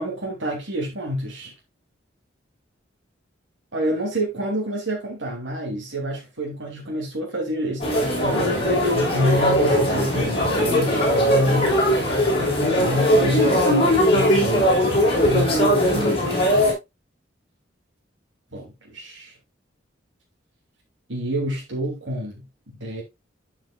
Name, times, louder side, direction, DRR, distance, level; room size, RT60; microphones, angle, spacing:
voice 1, 0.0-1.5 3.7-11.8 12.7-16.6 18.5-19.3 21.1-22.4 22.8-23.0, equal, 85° right, 2.9 m, -28 dB
sound 1, 7.8-16.7, equal, 30° left, 4.7 m, -19 dB
12.0 x 6.1 x 2.4 m
head